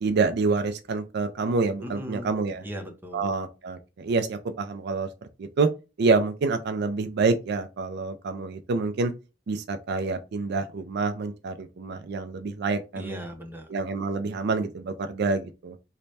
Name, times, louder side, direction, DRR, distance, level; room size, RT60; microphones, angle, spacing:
voice 1, 0.0-2.6 3.1-5.1 5.4-5.7 6.0-9.1 9.5-13.1 13.7-15.8, right 4 dB, 60° right, 0.4 m, -27 dB
voice 2, 1.8-2.3 2.6-3.3 13.0-13.7, equal, 10° right, 0.6 m, -38 dB
3.2 x 2.1 x 4.0 m
head